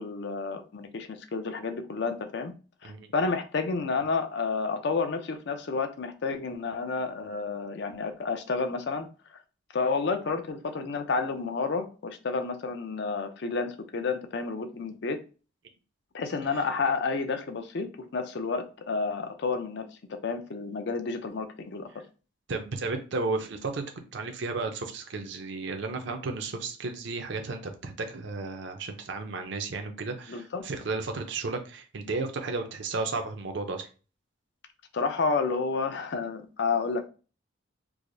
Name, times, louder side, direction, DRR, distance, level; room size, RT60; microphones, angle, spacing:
voice 1, 0.0-2.5 2.8-9.1 9.7-15.2 16.1-17.9 18.1-21.9 30.3-30.7 34.9-37.1, left 4 dB, 55° left, 0.5 m, -30 dB
voice 2, 22.5-33.9, right 3 dB, 55° right, 0.5 m, -33 dB
4.7 x 2.0 x 2.6 m
head